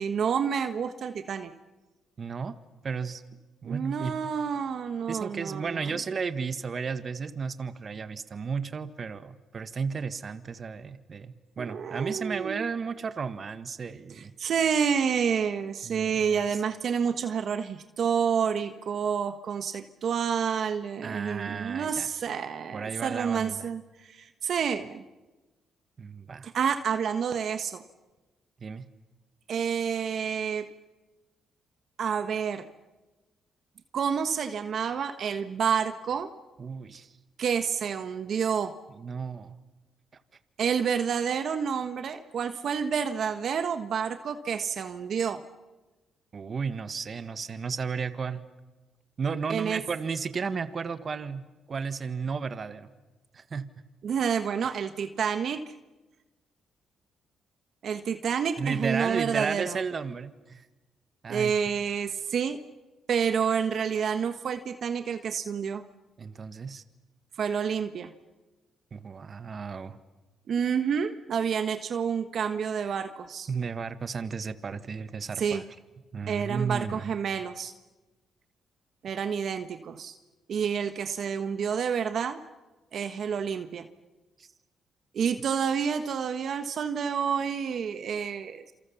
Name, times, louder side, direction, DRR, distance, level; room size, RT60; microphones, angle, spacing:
voice 1, 0.0-1.5 3.6-5.8 11.6-12.7 14.4-25.0 26.4-27.8 29.5-30.7 32.0-32.6 33.9-36.3 37.4-38.7 40.6-45.4 49.5-49.8 54.0-55.6 57.8-59.8 61.3-62.6 63.1-65.8 67.4-68.1 70.5-73.5 75.4-75.6 76.3-77.7 79.0-80.1 80.5-82.4 82.9-83.9 85.1-88.7, right 7 dB, 60° right, 8 dB, 1.4 m, -29 dB
voice 2, 2.2-2.5 2.8-3.2 3.6-4.1 5.1-14.3 15.8-16.4 21.0-22.1 22.7-23.7 26.0-26.5 28.6-28.8 36.6-37.1 39.0-39.5 46.3-48.4 49.2-52.9 53.3-53.6 58.6-60.6 61.2-61.5 66.2-66.8 68.9-70.0 73.5-75.6 76.1-77.1 84.4-84.5, right 5 dB, 45° right, 11 dB, 1.6 m, -33 dB
28.5 x 28.0 x 7.2 m, 1.2 s
cardioid pair, 85°, 0 cm